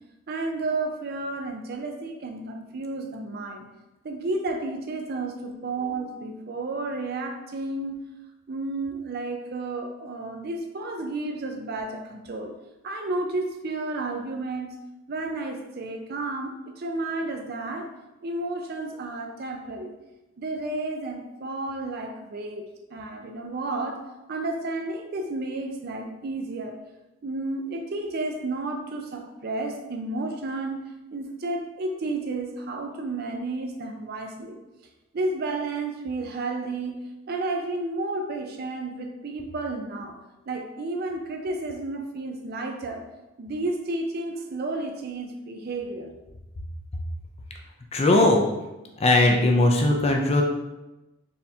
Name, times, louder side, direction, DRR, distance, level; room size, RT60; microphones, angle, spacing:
voice 1, 0.3-3.7 4.0-8.0 8.5-12.5 12.8-14.7 15.1-17.9 18.2-19.9 20.4-24.0 24.3-26.8 27.2-34.6 35.1-40.2 40.5-43.0 43.4-46.1, right 2 dB, 50° right, 4 dB, 0.5 m, -32 dB
voice 2, 47.9-48.4 49.0-50.4, left 2 dB, 30° left, 2 dB, 0.4 m, -19 dB
4.3 x 3.5 x 2.7 m, 1.0 s
head